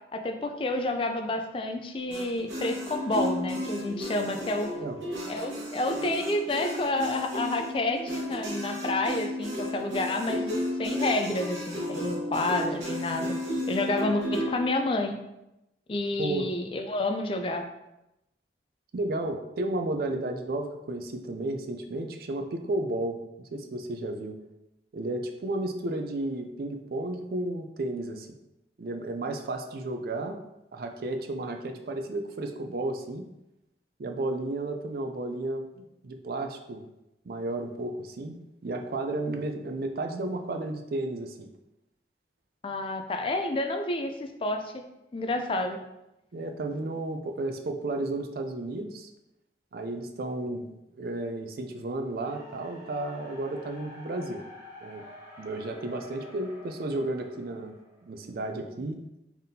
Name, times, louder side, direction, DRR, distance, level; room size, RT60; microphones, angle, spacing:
voice 1, 0.1-4.7 5.3-10.5 10.8-13.3 13.7-15.2 15.9-17.6 42.6-44.8 45.1-45.8, left 2 dB, 30° left, 5 dB, 0.3 m, -29 dB
sound 1, 2.1-14.6, left 1 dB, 90° right, 1.1 m, -33 dB
voice 2, 16.2-16.5 18.9-24.4 24.9-28.3 28.8-30.4 30.7-33.3 34.0-36.8 37.3-38.4 38.6-41.5 46.3-49.1 49.7-50.7 51.0-54.4 54.8-55.0 55.4-57.7 58.0-59.0, right 2 dB, 55° right, 5 dB, 0.4 m, -33 dB
sound 2, 52.1-58.3, left 2 dB, 15° right, 1.2 m, -49 dB
4.0 x 3.5 x 2.7 m, 0.91 s
head